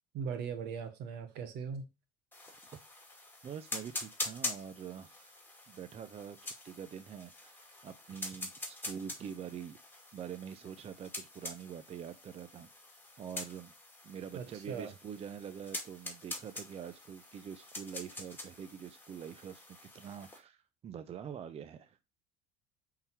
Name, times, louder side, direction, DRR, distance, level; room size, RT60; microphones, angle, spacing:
voice 1, 0.1-1.9 14.3-14.9, right 6 dB, 65° right, 1.3 m, -39 dB
sound 1, 2.3-20.4, left 2 dB, 10° left, 2.2 m, -45 dB
voice 2, 3.4-5.4 5.7-9.8 10.1-12.7 13.2-13.7 14.0-22.0, right 8 dB, 35° right, 0.5 m, -45 dB
5.5 x 3.8 x 4.4 m
supercardioid pair, 90°, 18 cm